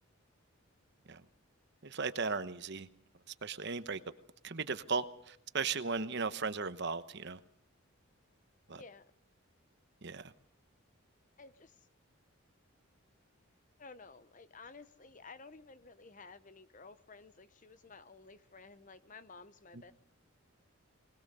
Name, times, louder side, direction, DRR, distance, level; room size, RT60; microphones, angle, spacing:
voice 1, 1.8-2.9 3.4-4.0 4.4-7.4 8.7-8.8 10.0-10.3 19.7-19.8, right 4 dB, 50° right, 12 dB, 1.0 m, -36 dB
voice 2, 8.8-9.1 11.4-11.7 13.8-19.9, left 4 dB, 35° left, 13 dB, 0.8 m, -54 dB
20.5 x 20.5 x 6.8 m, 0.66 s
head